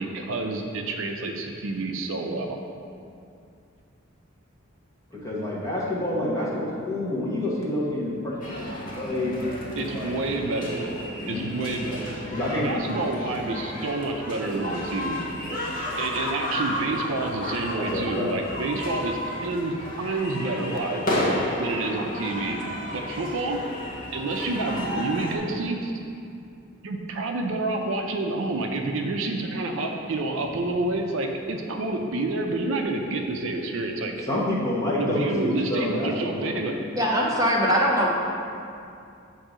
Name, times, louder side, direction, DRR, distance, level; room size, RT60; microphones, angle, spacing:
voice 1, 0.0-2.6 9.8-10.9 11.3-12.2 12.6-15.3 16.0-21.1 21.6-22.6 22.9-23.6 24.1-25.9 26.8-34.2 35.0-36.8, right 2 dB, 70° right, 3 dB, 0.5 m, -28 dB
voice 2, 5.1-10.1 11.2-11.4 12.3-13.1 15.3-15.7 17.8-18.4 34.2-36.6, left 1 dB, 15° left, -7 dB, 1.0 m, -28 dB
sound 1, 8.4-25.4, left 1 dB, 40° left, 0.8 m, -32 dB
voice 3, 37.0-38.1, equal, 15° right, -3 dB, 0.7 m, -21 dB
7.5 x 2.7 x 4.9 m, 2.5 s
head